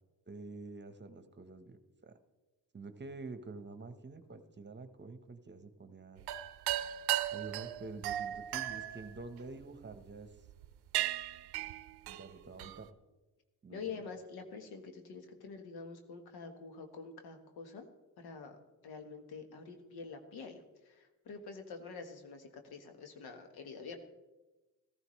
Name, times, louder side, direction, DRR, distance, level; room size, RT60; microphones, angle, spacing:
voice 1, 0.3-2.2 2.7-6.2 7.3-10.3 12.1-12.9 13.6-14.0, right 3 dB, 30° right, 10 dB, 1.2 m, -48 dB
sound 1, 6.2-10.0 10.5-10.7 10.9-12.9, right 13 dB, 85° right, 0.6 m, -36 dB
voice 2, 13.7-17.9 18.2-18.6 18.8-24.0, left 5 dB, 85° left, 6 dB, 1.5 m, -47 dB
14.5 x 14.0 x 3.2 m, 1.1 s
cardioid pair, 65°, 37 cm